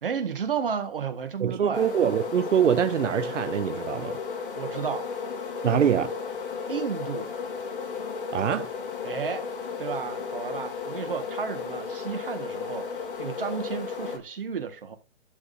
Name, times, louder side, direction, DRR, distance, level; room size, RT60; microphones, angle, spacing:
voice 1, 0.0-1.9 4.5-5.1 6.7-7.3 9.0-9.5 9.8-15.0, right 6 dB, 50° right, 1.6 m, -32 dB
voice 2, 1.4-4.2 5.6-6.1 8.3-8.7, right 8 dB, 80° right, 0.8 m, -24 dB
sound 1, 1.7-14.2, left 5 dB, 45° left, 2.2 m, -34 dB
12.0 x 6.4 x 2.6 m
hypercardioid pair, 175°, 36 cm